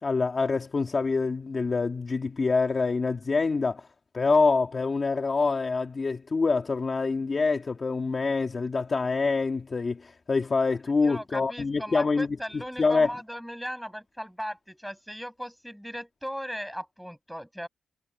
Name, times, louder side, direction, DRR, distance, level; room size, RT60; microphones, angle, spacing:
voice 1, 0.0-3.9 4.1-12.3 12.8-13.1, left 4 dB, 30° left, 1.7 m, -26 dB
voice 2, 11.0-17.7, equal, ahead, 7.4 m, -37 dB
wide cardioid pair, 160°, 0 cm